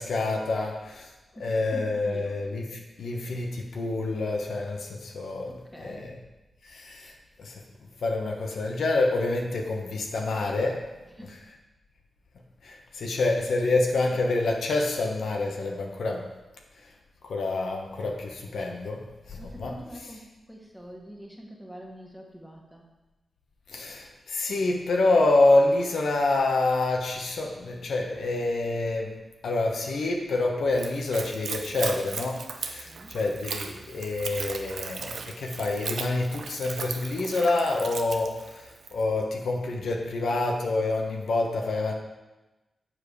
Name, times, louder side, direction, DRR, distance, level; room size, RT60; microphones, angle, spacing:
voice 1, 0.0-1.1 1.4-6.1 6.6-7.6 8.0-10.9 12.6-16.3 16.8-16.9 17.2-19.8 23.7-29.2 29.4-41.9, left 2 dB, 85° left, 1 dB, 1.0 m, -27 dB
voice 2, 1.3-2.4 5.5-6.2 11.2-11.4 13.2-13.4 19.4-22.8 32.8-33.1, equal, ahead, -1 dB, 1.5 m, -45 dB
Splash splatter / Trickle dribble, 30.7-39.0, right 5 dB, 80° right, 0.6 m, -37 dB
7.5 x 4.9 x 4.9 m, 1.1 s
cardioid pair, 80°, 0 cm